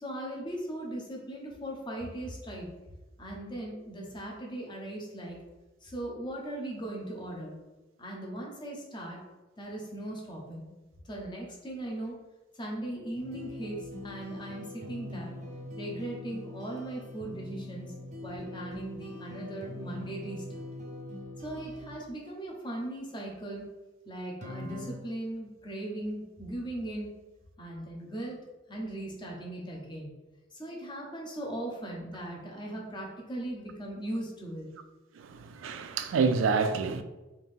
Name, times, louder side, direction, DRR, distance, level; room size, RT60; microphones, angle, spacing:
voice 1, 0.0-2.7 3.2-5.4 5.8-7.6 8.0-9.2 9.6-10.7 11.0-12.2 12.6-15.3 15.8-17.9 18.2-20.6 21.4-23.6 24.1-27.1 27.6-28.4 28.7-30.1 30.5-34.7, right 1 dB, 25° left, 0.8 m, -38 dB
sound 1, 13.1-22.0 24.4-24.9, left 1 dB, 35° right, 0.6 m, -42 dB
voice 2, 35.2-37.0, right 5 dB, 75° right, 0.3 m, -28 dB
3.5 x 2.7 x 3.5 m
head